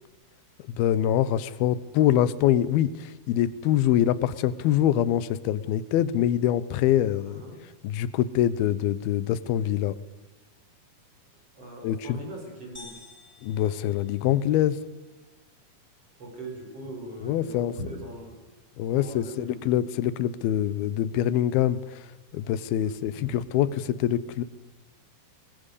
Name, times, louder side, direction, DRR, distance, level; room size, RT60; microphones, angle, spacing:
voice 1, 0.8-7.4 7.8-10.0 11.8-12.2 13.4-14.8 17.2-17.8 18.8-22.1 22.3-24.4, left 11 dB, 75° left, 16 dB, 2.7 m, -24 dB
voice 2, 7.3-7.6 11.6-12.9 16.2-18.4 18.9-19.5 23.2-23.3, right 1 dB, 35° right, 0 dB, 6.8 m, -40 dB
sound 1, 12.7-14.7, left 3 dB, 5° left, 4.2 m, -49 dB
22.0 x 20.5 x 8.4 m, 1.2 s
omnidirectional pair, 4.6 m